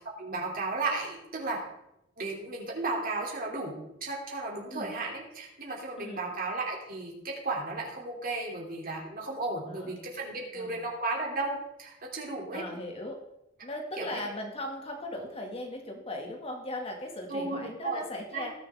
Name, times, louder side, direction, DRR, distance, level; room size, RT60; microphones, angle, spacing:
voice 1, 0.2-1.6 2.2-12.6 14.0-14.2 17.3-18.0 18.3-18.5, right 3 dB, 50° right, -1 dB, 2.9 m, -34 dB
voice 2, 6.0-6.3 9.7-10.0 10.5-10.9 12.5-13.2 13.6-18.5, left 1 dB, 30° left, 2 dB, 2.1 m, -38 dB
19.0 x 6.8 x 3.6 m, 0.83 s
head